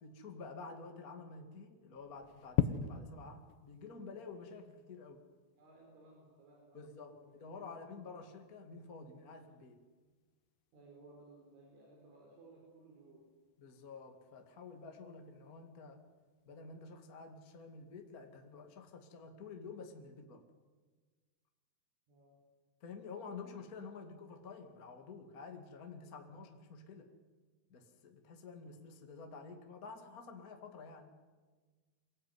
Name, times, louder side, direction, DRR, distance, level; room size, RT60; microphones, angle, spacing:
voice 1, 0.0-5.2 6.7-9.8 13.6-16.0 16.4-20.4 22.8-27.1 27.7-31.1, left 4 dB, 35° left, 4 dB, 1.3 m, -50 dB
sound 1, 1.9-19.1, left 10 dB, 75° left, 2.1 m, -45 dB
voice 2, 5.6-6.8 7.2-7.3 10.7-13.3 22.1-22.4, right 2 dB, 85° right, 0 dB, 6.9 m, -59 dB
25.0 x 18.5 x 9.5 m, 1.4 s
omnidirectional pair, 5.3 m